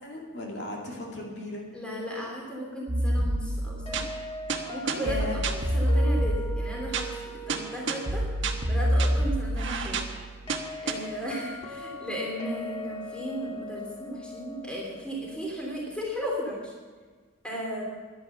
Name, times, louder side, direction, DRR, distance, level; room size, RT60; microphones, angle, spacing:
voice 1, 0.0-1.6 5.0-5.4, left 1 dB, 55° left, -2 dB, 2.5 m, -36 dB
voice 2, 1.7-4.0 4.7-8.2 8.7-10.0 10.8-16.7 17.4-17.8, equal, 5° left, -2 dB, 3.0 m, -35 dB
sound 1, 2.9-10.9, right 1 dB, 65° right, 1.3 m, -28 dB
sound 2, 3.9-16.7, left 1 dB, 25° left, 2.2 m, -41 dB
11.5 x 11.0 x 7.0 m, 1.4 s
head